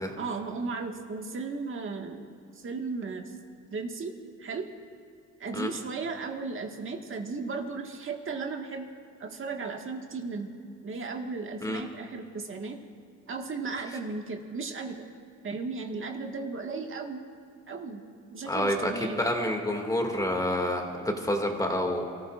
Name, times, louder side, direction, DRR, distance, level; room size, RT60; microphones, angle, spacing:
voice 1, 0.2-2.3 2.6-3.3 3.7-4.1 4.4-4.7 5.4-8.9 9.2-10.5 10.8-12.8 13.3-15.1 15.4-17.2 17.7-18.0 18.3-19.2, right 4 dB, 45° right, 2 dB, 1.7 m, -35 dB
voice 2, 18.5-22.0, left 1 dB, 10° left, 2 dB, 2.2 m, -28 dB
28.5 x 14.5 x 2.5 m, 2.4 s
cardioid pair, 90°, 30 cm